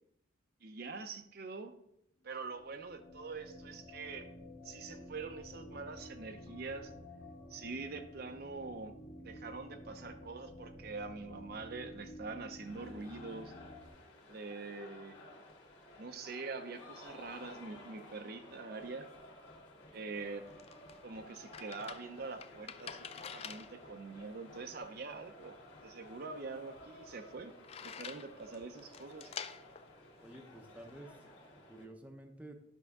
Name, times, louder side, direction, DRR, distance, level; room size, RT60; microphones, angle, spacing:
voice 1, 0.6-1.7 2.2-4.3 4.6-6.9 7.5-8.9 9.2-13.5 14.3-15.2 16.0-19.1 19.9-20.5 21.0-27.5 27.8-29.3, right 4 dB, 50° right, 7 dB, 0.6 m, -44 dB
sound 1, 2.3-13.9, left 1 dB, 85° left, 1.8 m, -51 dB
sound 2, 12.6-31.9, left 1 dB, 60° left, 1.8 m, -55 dB
sound 3, 20.1-31.0, left 7 dB, 30° left, 0.3 m, -50 dB
voice 2, 30.2-31.4 31.7-32.6, right 1 dB, 5° right, 4 dB, 0.7 m, -51 dB
10.0 x 6.2 x 3.6 m, 0.75 s
head